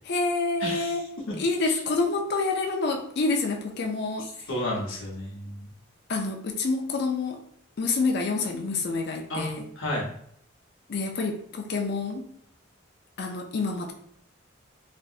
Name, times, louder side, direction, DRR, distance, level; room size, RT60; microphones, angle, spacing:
voice 1, 0.0-1.0 1.4-4.3 6.1-7.4 7.8-9.7 10.9-12.3 13.2-13.9, left 3 dB, 55° left, 3 dB, 0.4 m, -27 dB
voice 2, 0.6-1.0 1.3-1.4 4.5-5.7 9.3-10.1, left 1 dB, 70° left, -4 dB, 0.9 m, -31 dB
3.3 x 2.7 x 2.4 m, 0.68 s
head